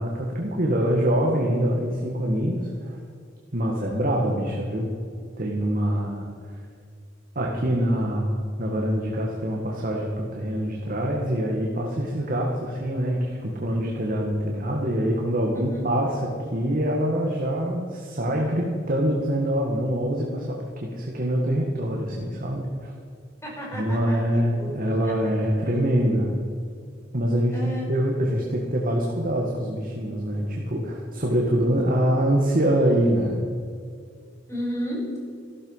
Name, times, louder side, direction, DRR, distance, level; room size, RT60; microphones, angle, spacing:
voice 1, 0.0-3.0 3.5-4.9 5.4-6.3 7.4-22.9 23.7-26.3 27.1-33.4, equal, 45° right, -1 dB, 1.9 m, -25 dB
voice 2, 15.5-15.9 23.4-25.1 27.5-27.9 34.5-35.2, equal, 15° left, -3 dB, 5.0 m, -33 dB
15.0 x 13.0 x 5.6 m, 2.3 s
head